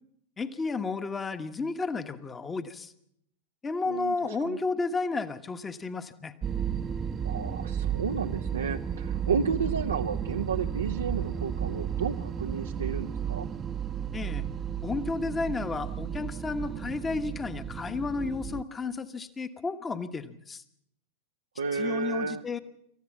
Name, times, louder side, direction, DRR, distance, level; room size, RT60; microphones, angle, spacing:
voice 1, 0.4-2.9 3.6-6.3 14.1-14.5 14.8-20.6 21.7-22.6, left 4 dB, 15° left, 9 dB, 1.3 m, -32 dB
voice 2, 3.9-4.6 7.2-13.5 21.6-22.4, right 5 dB, 70° right, 4 dB, 0.8 m, -32 dB
sound 1, 6.4-18.6, right 8 dB, 20° right, 0.9 m, -33 dB
27.5 x 14.5 x 7.3 m, 0.76 s
figure-of-eight pair, 90°, 0 cm